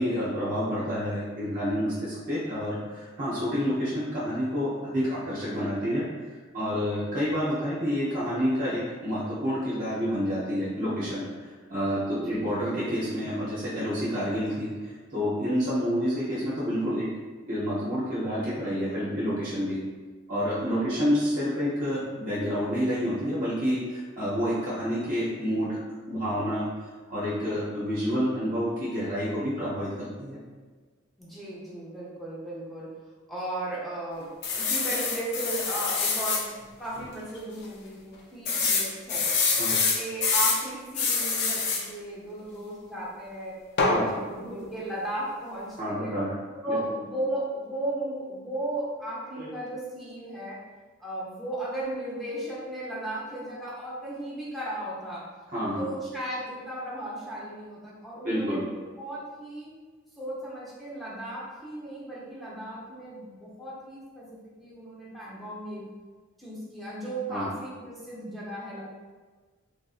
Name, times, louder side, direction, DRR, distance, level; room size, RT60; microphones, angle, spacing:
voice 1, 0.0-6.1 6.5-11.2 11.7-17.1 17.5-19.8 20.3-25.8 26.1-26.6 27.1-30.4 39.6-39.7 43.9-44.0 45.8-46.3 46.7-46.8 49.4-49.5 55.5-55.9 58.2-58.6 67.3-67.5, equal, 40° right, -9 dB, 0.7 m, -28 dB
voice 2, 20.6-21.0 31.2-32.9 33.3-36.5 36.8-39.3 39.7-46.1 46.6-50.6 51.0-55.2 55.8-59.7 60.2-64.3 64.6-65.8 66.4-68.8, right 1 dB, ahead, -8 dB, 0.7 m, -35 dB
sound 1, 34.4-36.4 37.0-37.1 37.4-37.5 38.5-40.6 40.9-41.8 43.8-44.0, left 4 dB, 55° left, 0.4 m, -25 dB
3.2 x 2.5 x 2.4 m, 1.4 s
head